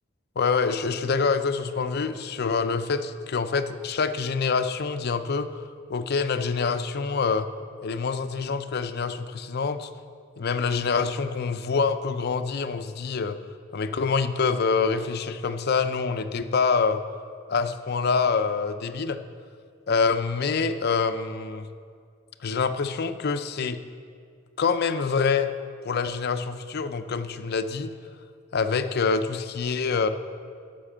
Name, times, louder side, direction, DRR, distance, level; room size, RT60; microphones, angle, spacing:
voice 1, 0.4-5.6 5.9-7.5 7.8-9.9 10.4-13.4 13.7-17.0 17.5-19.2 19.9-21.7 22.4-23.8 24.6-25.5 25.8-27.9 28.5-30.1, left 5 dB, 55° left, 9 dB, 0.5 m, -26 dB
11.5 x 5.7 x 7.3 m, 2.2 s
head